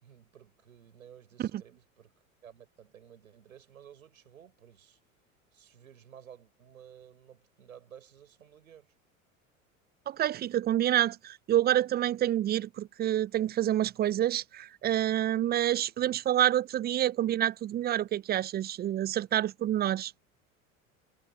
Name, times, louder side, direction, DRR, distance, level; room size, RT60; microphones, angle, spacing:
voice 1, 0.0-5.0 5.5-8.9, right 9 dB, 75° right, 4.9 m, -54 dB
voice 2, 10.1-20.1, right 12 dB, 25° right, 0.6 m, -28 dB
figure-of-eight pair, 75°, 41 cm